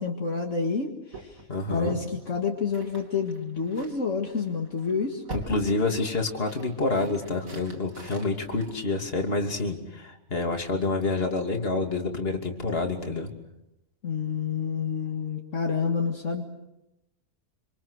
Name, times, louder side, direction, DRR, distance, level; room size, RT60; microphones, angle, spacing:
voice 1, 0.0-1.4 1.7-5.2 14.0-16.4, left 5 dB, 60° left, 1 dB, 2.3 m, -29 dB
sound 1, 1.1-9.6, right 1 dB, 80° right, 3.7 m, -45 dB
voice 2, 1.5-2.0 5.3-13.3, left 3 dB, 45° left, 3 dB, 3.0 m, -28 dB
27.0 x 26.5 x 6.5 m, 0.90 s
omnidirectional pair, 1.4 m